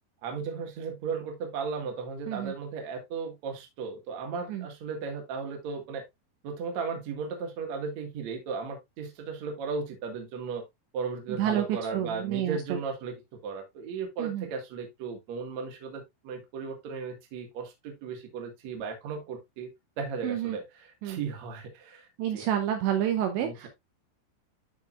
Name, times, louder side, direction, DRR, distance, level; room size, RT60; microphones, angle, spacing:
voice 1, 0.2-6.0 6.4-10.6 10.9-13.1 13.4-19.7 20.0-22.1 22.3-22.4 23.4-23.7, right 5 dB, 55° right, 2.0 m, -36 dB
voice 2, 11.4-12.8 14.2-14.5 20.2-20.6 21.0-21.2 22.2-23.7, right 10 dB, 75° right, 2.8 m, -29 dB
11.5 x 4.8 x 2.4 m
omnidirectional pair, 5.7 m